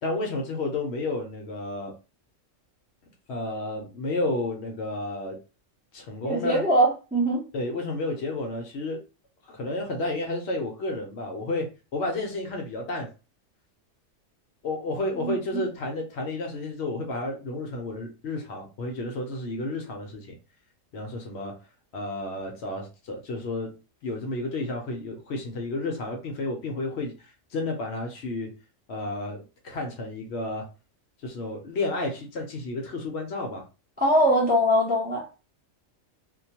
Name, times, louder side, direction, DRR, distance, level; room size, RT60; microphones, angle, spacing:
voice 1, 0.0-1.9 3.3-5.4 5.9-6.6 7.5-9.0 9.4-13.1 14.6-20.4 20.9-21.6 21.9-23.8 24.0-28.5 28.9-30.7 31.2-33.7, left 2 dB, 65° left, 0.8 m, -31 dB
voice 2, 6.2-7.4 15.2-15.6 34.0-35.3, equal, 10° right, 0.4 m, -22 dB
2.3 x 2.2 x 2.7 m
omnidirectional pair, 1.3 m